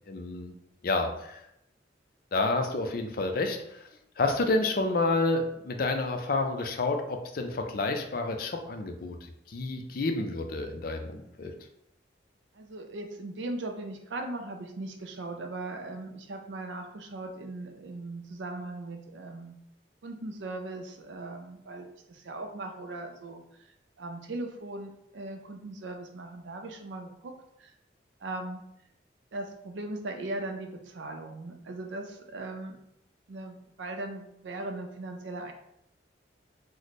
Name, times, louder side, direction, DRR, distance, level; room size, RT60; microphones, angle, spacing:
voice 1, 0.1-0.5 0.8-1.4 2.3-3.9 4.2-9.2 9.5-11.5, left 2 dB, 55° left, 5 dB, 0.4 m, -29 dB
voice 2, 12.5-19.6 20.0-27.3 27.6-27.7 28.2-28.6 29.3-32.8 33.3-35.5, right 2 dB, 90° right, 4 dB, 0.5 m, -39 dB
3.1 x 2.1 x 4.0 m, 0.79 s
head